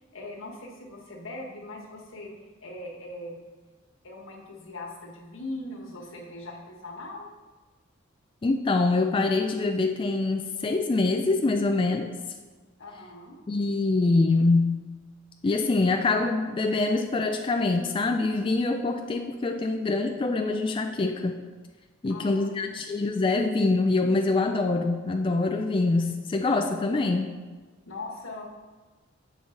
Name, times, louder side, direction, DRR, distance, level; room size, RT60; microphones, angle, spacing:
voice 1, 0.1-2.3 2.6-3.4 4.0-7.3 12.8-13.4 22.1-22.8 23.1-23.2 27.9-28.4, left 2 dB, 85° left, -1 dB, 1.3 m, -40 dB
voice 2, 8.4-12.1 13.5-14.8 15.4-21.4 22.0-27.3, left 3 dB, 25° left, 4 dB, 0.3 m, -25 dB
7.2 x 5.4 x 3.8 m, 1.3 s
head